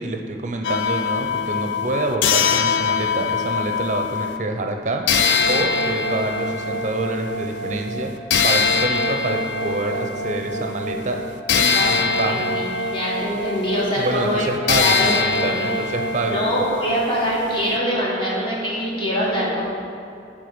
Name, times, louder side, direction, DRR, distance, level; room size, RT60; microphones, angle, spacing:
voice 1, 0.0-5.0 5.5-11.2 11.5-12.5 14.0-16.4, right 2 dB, 40° right, 3 dB, 0.6 m, -27 dB
sound 1, 0.6-4.4 5.1-17.8, left 4 dB, 85° left, 0.4 m, -23 dB
voice 2, 11.7-12.6 12.9-14.4 14.8-15.1 15.4-15.7 16.3-19.6, equal, 30° left, -6 dB, 1.7 m, -24 dB
8.9 x 3.7 x 5.1 m, 2.6 s
head